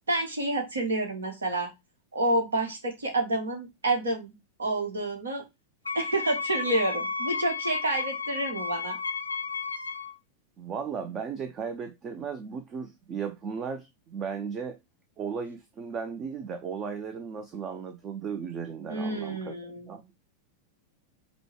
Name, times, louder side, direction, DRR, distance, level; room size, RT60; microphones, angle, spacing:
voice 1, 0.1-1.7 2.1-4.3 4.6-5.4 5.9-9.0 18.9-19.9, right 2 dB, 70° right, 1.4 m, -29 dB
Wind instrument woodwind instrument, 5.8-10.1, left 5 dB, 80° left, 0.5 m, -33 dB
voice 2, 10.6-14.8 15.2-20.0, right 6 dB, 30° right, 0.6 m, -36 dB
5.2 x 2.3 x 4.5 m
figure-of-eight pair, 90°, 0 cm